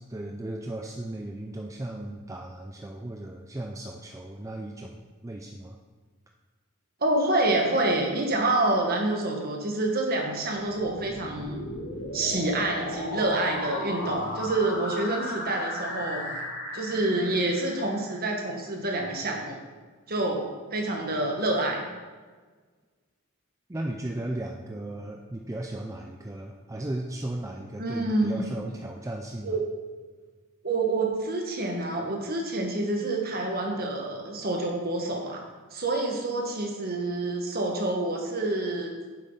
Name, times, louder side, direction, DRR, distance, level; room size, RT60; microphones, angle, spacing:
voice 1, 0.0-5.8 23.7-29.6, right 1 dB, 15° right, 1 dB, 0.4 m, -36 dB
voice 2, 7.0-11.6 12.1-16.3 16.7-19.6 20.1-20.4 20.7-21.9 27.8-28.5 29.4-29.6 30.6-35.4 35.7-38.9, right 2 dB, 45° right, 1 dB, 1.5 m, -27 dB
sound 1, 10.7-18.5, left 1 dB, 60° left, 2.3 m, -36 dB
9.3 x 7.6 x 3.9 m, 1.4 s
head